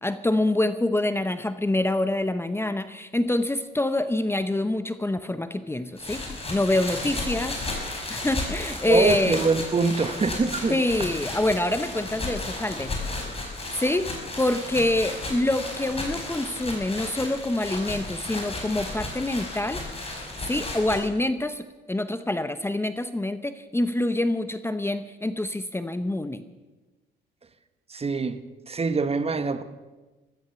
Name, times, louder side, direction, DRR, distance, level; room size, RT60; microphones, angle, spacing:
voice 1, 0.0-7.6 8.1-9.4 10.7-12.9 13.8-14.1 14.4-19.8 20.5-26.4, left 1 dB, 10° left, 0.8 m, -26 dB
sound 1, 6.0-21.0, left 2 dB, 30° left, 5.3 m, -34 dB
voice 2, 8.9-10.8 27.9-29.6, right 4 dB, 30° right, 1.2 m, -24 dB
15.0 x 14.0 x 6.9 m
cardioid pair, 90°, 20 cm